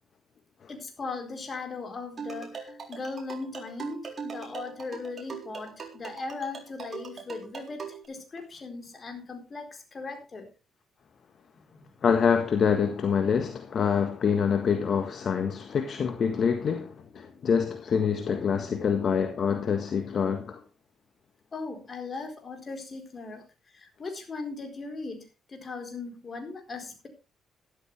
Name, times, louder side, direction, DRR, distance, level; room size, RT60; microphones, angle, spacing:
voice 1, 0.7-10.5 11.7-11.8 21.5-23.4 23.7-27.1, left 3 dB, 35° left, 4.4 m, -38 dB
sound 1, 2.2-8.1, right 5 dB, 40° right, 3.8 m, -41 dB
voice 2, 12.0-20.6, left 6 dB, 55° left, 1.6 m, -26 dB
13.0 x 12.5 x 3.5 m
cardioid pair, 90°, 0 cm